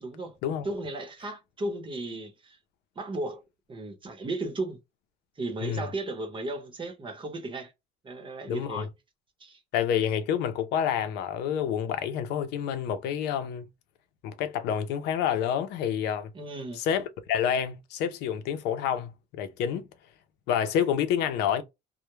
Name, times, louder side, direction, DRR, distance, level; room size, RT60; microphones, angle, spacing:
voice 1, 0.0-0.4 0.6-2.6 3.0-3.4 3.7-4.8 5.4-7.7 8.0-8.9 9.4-9.6 16.3-16.8, right 2 dB, 30° right, 0.8 m, -35 dB
voice 2, 8.5-8.9 9.7-13.6 14.2-16.3 16.7-19.9 20.5-21.6, left 8 dB, 90° left, 0.5 m, -28 dB
2.2 x 2.1 x 2.9 m
cardioid pair, 110°, 17 cm